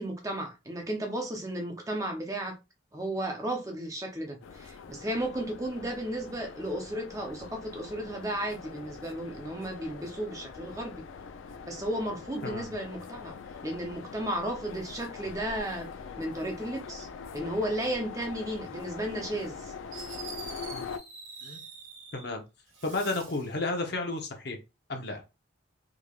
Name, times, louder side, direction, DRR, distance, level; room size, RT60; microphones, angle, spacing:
voice 1, 0.0-2.6 2.9-10.9 11.6-13.3 13.6-15.9 16.2-17.1 17.3-19.7, right 1 dB, 15° right, 0.6 m, -34 dB
sound 1, 4.4-21.0, left 5 dB, 75° left, 0.4 m, -43 dB
Fireworks, 19.9-22.3 22.7-23.5, right 4 dB, 80° right, 1.6 m, -45 dB
voice 2, 22.8-24.6 24.9-25.2, left 2 dB, 55° left, 0.8 m, -32 dB
3.6 x 3.3 x 2.3 m
head